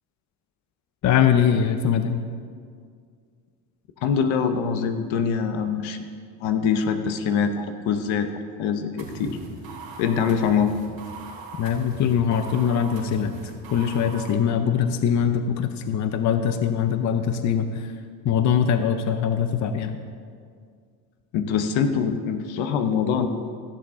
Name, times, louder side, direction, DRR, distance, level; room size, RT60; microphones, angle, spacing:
voice 1, 1.0-2.2 11.6-13.3 13.7-17.9 18.2-20.0, left 8 dB, 40° left, 8 dB, 0.6 m, -22 dB
voice 2, 4.0-6.0 6.4-8.3 8.6-9.4 10.0-10.7 21.3-23.3, left 6 dB, 90° left, 7 dB, 0.9 m, -24 dB
sound 1, 9.0-14.3, right 3 dB, 70° right, 2.8 m, -40 dB
16.0 x 7.3 x 3.6 m, 2.1 s
cardioid pair, 115°, 45 cm